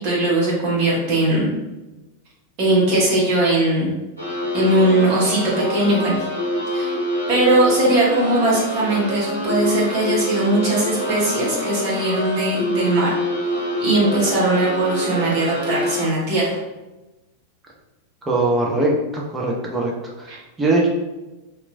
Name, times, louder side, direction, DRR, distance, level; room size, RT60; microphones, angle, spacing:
voice 1, 0.0-1.5 2.6-3.9 4.5-6.2 6.7-6.9 7.3-13.1 13.8-16.6 20.3-20.4, right 1 dB, 45° right, -5 dB, 1.1 m, -19 dB
sound 1, 4.2-16.1, left 1 dB, 85° right, 0.9 m, -26 dB
voice 2, 18.2-20.9, right 2 dB, 15° right, -2 dB, 0.5 m, -21 dB
2.9 x 2.3 x 2.6 m, 1.1 s
figure-of-eight pair, 90°, 0 cm